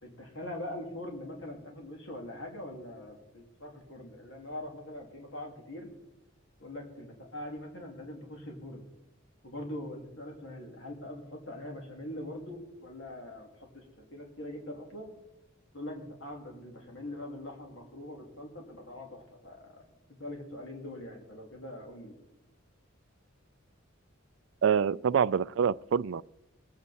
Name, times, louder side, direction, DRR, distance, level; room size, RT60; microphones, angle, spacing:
voice 1, 0.0-5.9 6.6-8.8 9.4-15.1 15.7-19.8 20.2-22.2, left 1 dB, 70° left, 2.6 m, -42 dB
voice 2, 24.6-26.2, right 7 dB, 65° right, 0.3 m, -26 dB
21.0 x 8.5 x 4.2 m
head